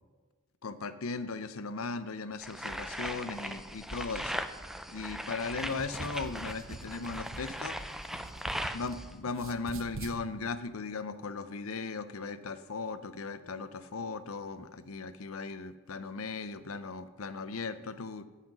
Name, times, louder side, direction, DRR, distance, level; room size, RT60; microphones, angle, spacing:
voice 1, 0.6-4.4 4.9-7.8 8.7-18.3, left 4 dB, 75° left, 13 dB, 0.7 m, -37 dB
sound 1, 2.4-9.1, equal, ahead, 0.4 m, -39 dB
sound 2, 5.6-9.0 9.3-10.2, right 2 dB, 65° right, 0.9 m, -44 dB
16.5 x 5.8 x 6.0 m, 1.3 s
head